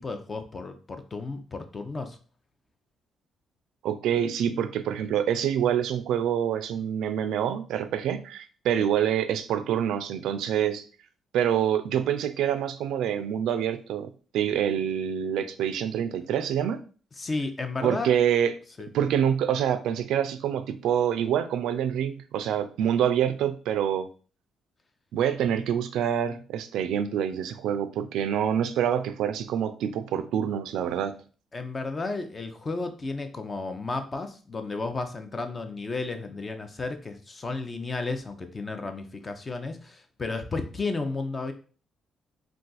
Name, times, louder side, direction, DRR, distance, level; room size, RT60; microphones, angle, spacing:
voice 1, 0.0-2.2 17.2-18.1 18.8-18.9 31.5-41.5, left 3 dB, 30° left, 7 dB, 0.5 m, -33 dB
voice 2, 3.8-10.8 11.3-16.8 17.8-18.6 18.9-24.1 25.1-31.2, right 9 dB, 85° right, 10 dB, 0.3 m, -26 dB
2.4 x 2.3 x 3.9 m, 0.38 s
cardioid pair, 90°, 0 cm